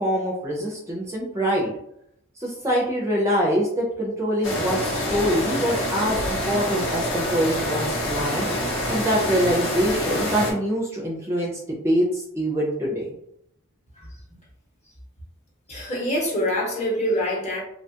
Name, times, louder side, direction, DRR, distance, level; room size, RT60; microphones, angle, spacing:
voice 1, 0.0-1.7 2.4-8.5 8.9-13.1, equal, 15° right, -3 dB, 0.5 m, -24 dB
sound 1, 4.4-10.5, left 1 dB, 60° left, 0.8 m, -26 dB
voice 2, 15.7-17.6, equal, 35° left, -3 dB, 0.9 m, -25 dB
2.7 x 2.2 x 2.8 m, 0.74 s
head